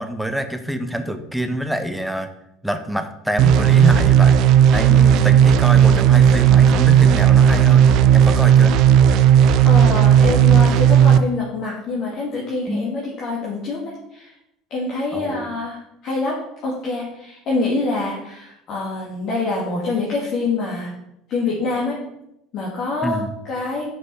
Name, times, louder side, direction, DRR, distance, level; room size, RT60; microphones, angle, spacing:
voice 1, 0.0-2.3 2.6-4.4 4.7-8.7 12.7-12.9 15.1-15.5 23.0-23.3, equal, ahead, 8 dB, 1.0 m, -26 dB
sound 1, 3.4-11.2, right 9 dB, 60° right, 0.5 m, -13 dB
voice 2, 9.6-13.8 14.1-14.3 14.7-20.9 21.3-22.0 22.5-23.9, left 3 dB, 55° left, -5 dB, 2.2 m, -25 dB
6.3 x 5.3 x 5.5 m, 0.83 s
hypercardioid pair, 80°, 0 cm